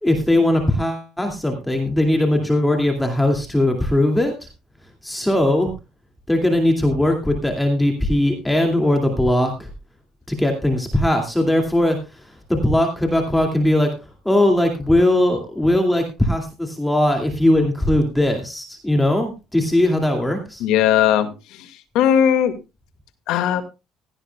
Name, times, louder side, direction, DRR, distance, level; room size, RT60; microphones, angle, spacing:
voice 1, 0.0-4.3 5.0-5.7 6.3-9.7 10.3-14.0 14.2-20.6, left 1 dB, 5° left, 3 dB, 2.4 m, -19 dB
voice 2, 20.6-21.7 21.9-22.5 23.3-23.6, left 9 dB, 75° left, 8 dB, 2.0 m, -18 dB
16.0 x 13.5 x 2.3 m, 0.27 s
cardioid pair, 120°, 0 cm